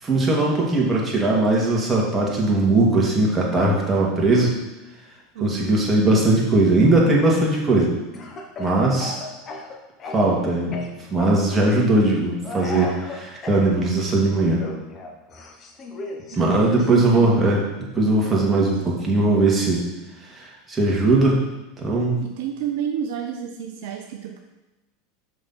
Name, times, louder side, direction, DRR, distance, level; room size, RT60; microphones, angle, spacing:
voice 1, 0.0-4.5 5.4-7.9 8.6-9.2 10.1-10.8 11.1-14.6 16.3-17.6 18.0-19.8 20.3-21.4 21.8-22.2, right 2 dB, 20° right, -3 dB, 2.2 m, -19 dB
voice 2, 5.3-5.8 16.3-17.4 22.2-24.4, right 9 dB, 65° right, 3 dB, 0.6 m, -31 dB
Speech / Cough, 8.1-10.4 10.7-11.5 12.4-13.6 14.6-16.9, left 2 dB, 35° left, 1.2 m, -35 dB
6.2 x 5.7 x 4.3 m, 1.0 s
hypercardioid pair, 85°, 0 cm